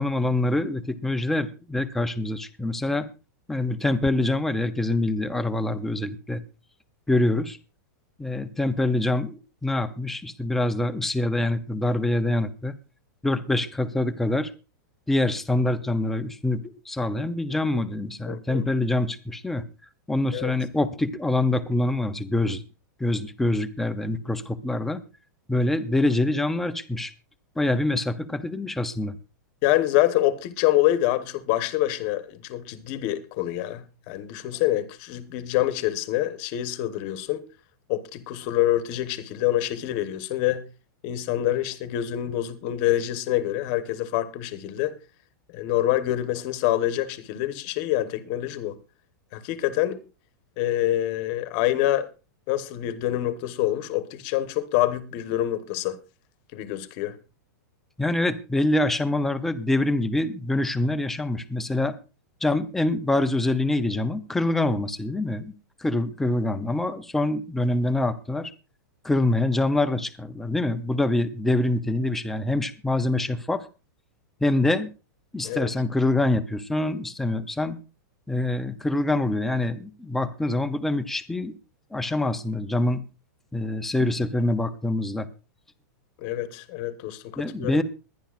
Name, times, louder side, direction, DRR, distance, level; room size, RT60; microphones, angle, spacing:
voice 1, 0.0-3.1 3.5-6.4 7.1-7.6 8.2-12.8 13.2-14.5 15.1-19.6 20.1-22.6 23.0-25.0 25.5-27.1 27.6-29.2 58.0-62.0 62.4-65.5 65.8-68.5 69.0-73.7 74.4-74.9 75.3-77.8 78.3-81.5 81.9-83.0 83.5-85.3 87.4-87.8, left 2 dB, 5° left, 0.5 m, -25 dB
voice 2, 18.3-18.7 20.3-20.5 29.6-37.4 37.9-40.6 41.0-44.9 45.5-48.7 49.3-50.0 50.6-52.1 52.5-56.0 56.5-57.1 75.4-75.7 86.2-87.8, left 14 dB, 30° left, 1.1 m, -26 dB
22.0 x 10.5 x 2.4 m
supercardioid pair, 175°, 11 cm